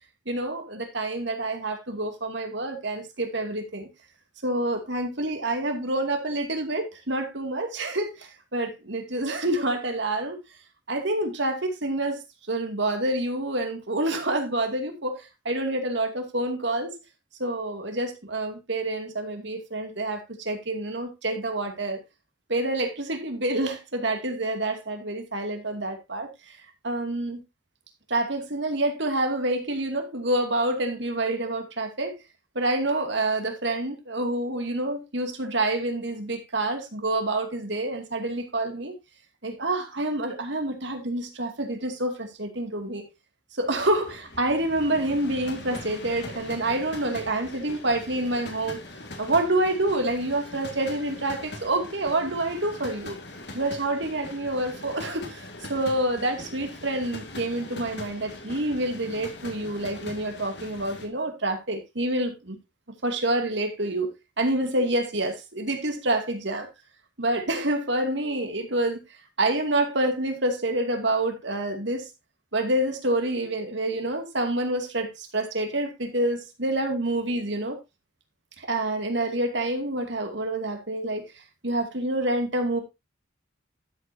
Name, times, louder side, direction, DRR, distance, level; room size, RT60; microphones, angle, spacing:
voice 1, 0.3-3.9 4.4-10.4 10.9-12.2 12.5-16.9 17.4-22.0 22.5-26.3 26.8-27.4 28.1-32.1 32.5-38.9 39.4-43.0 43.6-48.8 49.2-53.1 53.5-55.4 55.7-62.6 63.0-64.1 64.4-66.7 67.2-69.0 69.4-72.1 72.5-77.8 78.6-81.3 81.6-82.8, right 1 dB, 70° right, 2.4 m, -27 dB
sound 1, 43.6-61.1, left 2 dB, 60° left, 2.3 m, -41 dB
12.5 x 8.1 x 2.7 m
head